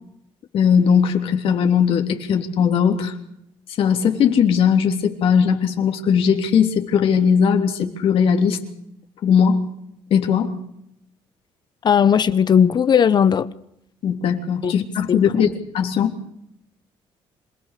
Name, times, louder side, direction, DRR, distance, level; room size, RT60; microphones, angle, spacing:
voice 1, 0.5-3.1 3.8-8.6 9.2-9.6 10.1-10.5 14.0-16.1, left 7 dB, 70° left, 3.4 m, -18 dB
voice 2, 11.8-13.5 14.6-14.7 15.1-15.2, left 7 dB, 45° left, 1.1 m, -16 dB
27.0 x 17.5 x 6.8 m
cardioid pair, 90°, 10 cm